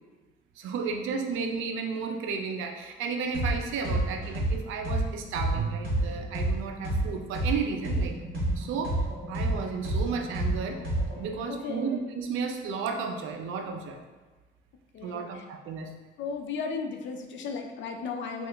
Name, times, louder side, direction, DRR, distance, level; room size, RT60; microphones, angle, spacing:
voice 1, 0.6-8.2 8.6-9.0 9.3-10.8 11.2-14.0 15.0-15.9, right 5 dB, 90° right, 4 dB, 0.4 m, -33 dB
sound 1, 3.3-3.5 3.8-7.5 7.8-11.3, right 1 dB, 50° right, 1.3 m, -28 dB
voice 2, 11.5-11.9 14.9-15.3 16.2-18.5, left 5 dB, 70° left, 4 dB, 0.5 m, -35 dB
2.8 x 2.4 x 3.3 m, 1.3 s
cardioid pair, 90°, 20 cm